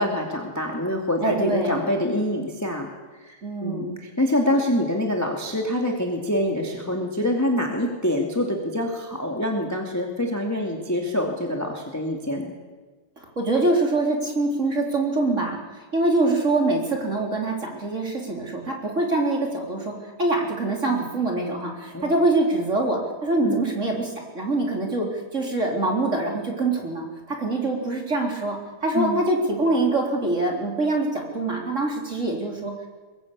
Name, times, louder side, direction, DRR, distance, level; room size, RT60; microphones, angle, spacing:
voice 1, 0.0-2.9 3.3-3.4 3.6-12.5 21.9-22.1 23.4-23.6 28.9-29.2, left 1 dB, 5° left, 1 dB, 2.2 m, -25 dB
voice 2, 1.2-1.8 3.4-4.0 13.4-32.9, right 2 dB, 25° right, 0 dB, 3.9 m, -24 dB
22.5 x 22.0 x 8.4 m, 1.3 s
omnidirectional pair, 3.4 m